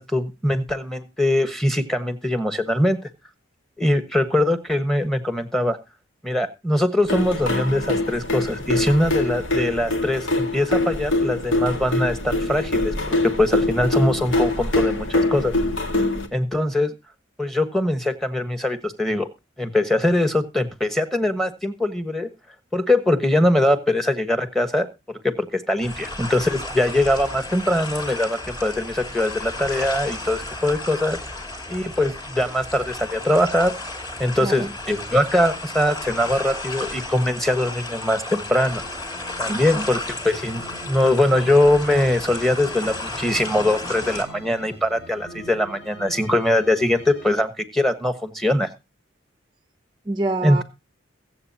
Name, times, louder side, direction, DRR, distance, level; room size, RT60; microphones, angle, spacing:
voice 1, 0.0-3.0 3.8-5.8 6.2-15.5 16.3-16.9 17.4-19.3 19.6-22.3 22.7-24.9 25.2-31.2 31.7-33.7 34.2-38.8 39.4-40.0 40.2-48.7 50.4-50.6, left 1 dB, ahead, 9 dB, 1.2 m, -22 dB
sound 1, 7.1-16.3, left 2 dB, 75° left, 2.0 m, -24 dB
sound 2, 25.8-44.2, left 2 dB, 20° left, 2.4 m, -33 dB
voice 2, 34.4-34.7 39.5-39.9 50.0-50.6, right 2 dB, 20° right, 9 dB, 0.6 m, -27 dB
sound 3, 38.5-47.4, right 1 dB, 55° left, 5.3 m, -44 dB
22.5 x 7.9 x 2.8 m, 0.26 s
head